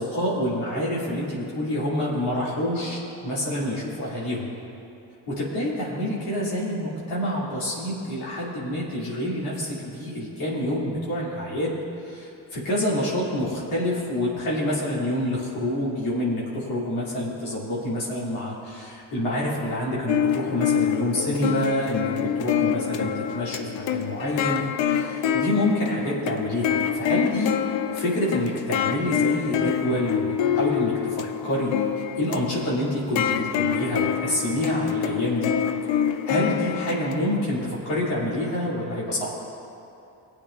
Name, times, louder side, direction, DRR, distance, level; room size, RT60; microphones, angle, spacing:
voice 1, 0.0-4.5 5.3-11.8 12.0-23.6 23.9-27.5 27.9-35.5 36.2-39.3, left 1 dB, 85° left, -7 dB, 2.7 m, -27 dB
sound 1, 20.1-37.4, left 9 dB, 70° left, 0.7 m, -26 dB
19.5 x 8.5 x 2.5 m, 2.8 s
supercardioid pair, 60°, 47 cm